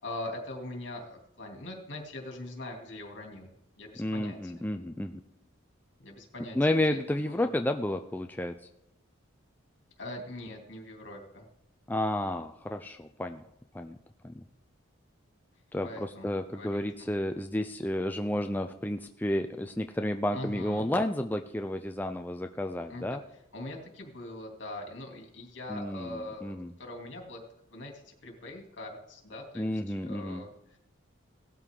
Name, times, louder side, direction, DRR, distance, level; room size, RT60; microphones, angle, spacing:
voice 1, 0.0-3.5 3.8-4.7 6.0-6.6 6.9-7.0 7.2-7.5 10.0-11.5 15.8-16.8 20.3-20.9 22.9-23.2 23.5-27.4 27.7-30.8, left 1 dB, 60° left, 1 dB, 2.9 m, -42 dB
voice 2, 4.0-5.2 6.6-8.5 11.9-13.4 13.7-14.0 14.2-14.4 15.7-23.2 25.7-26.7 29.5-30.4, left 1 dB, 10° left, 5 dB, 0.4 m, -31 dB
17.5 x 13.0 x 3.8 m, 0.86 s
head